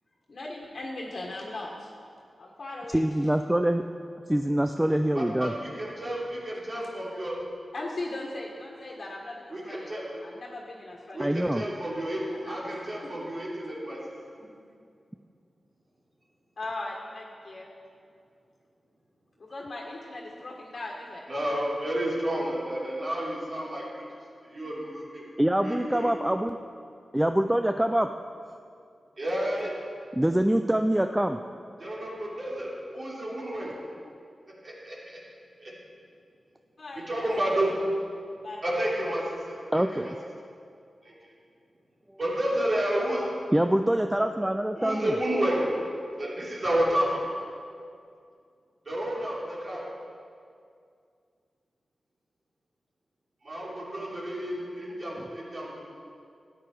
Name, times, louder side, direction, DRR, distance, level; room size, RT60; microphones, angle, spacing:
voice 1, 0.3-1.9 2.3-3.0 7.7-9.9 10.2-11.3 12.3-13.1 14.4-14.5 16.6-17.7 19.4-21.3 36.8-37.5 38.4-38.7, left 2 dB, 55° left, -3 dB, 1.6 m, -39 dB
voice 2, 2.9-3.8 4.3-5.5 11.2-11.6 25.4-26.6 27.1-28.1 30.2-31.4 39.7-40.1 43.5-45.1 55.2-55.3, right 1 dB, 10° right, 7 dB, 0.4 m, -24 dB
voice 3, 5.1-7.4 9.5-10.2 11.1-14.3 21.3-24.0 24.4-25.3 25.6-26.1 29.2-29.7 31.8-33.8 34.6-35.2 35.6-35.7 36.9-37.7 38.6-40.1 41.0-41.1 42.2-43.3 44.8-45.7 46.2-47.2 48.8-49.9 53.4-55.8, right 1 dB, 45° right, -5 dB, 3.2 m, -31 dB
13.0 x 9.2 x 4.6 m, 2.3 s
wide cardioid pair, 75°, 0 cm